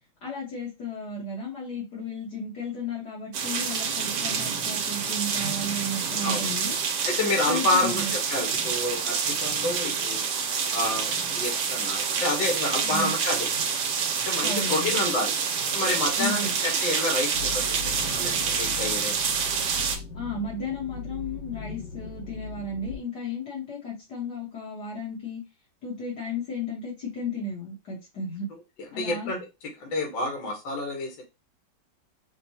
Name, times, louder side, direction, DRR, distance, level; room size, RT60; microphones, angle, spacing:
voice 1, 0.2-6.7 7.4-8.1 12.8-13.1 14.4-15.0 16.2-16.5 20.1-25.4 25.8-28.5 28.9-29.3, left 2 dB, 60° left, -4 dB, 1.7 m, -34 dB
sound 1, 3.3-20.0, right 6 dB, 80° right, 1.5 m, -27 dB
voice 2, 6.2-6.5 7.0-10.3 10.7-13.5 14.3-15.4 15.7-19.2 28.9-29.4 29.8-31.2, left 2 dB, 75° left, 1 dB, 1.8 m, -29 dB
sound 2, 17.3-23.0, left 5 dB, 45° left, 1.1 m, -39 dB
5.8 x 2.2 x 2.8 m, 0.25 s
omnidirectional pair, 2.1 m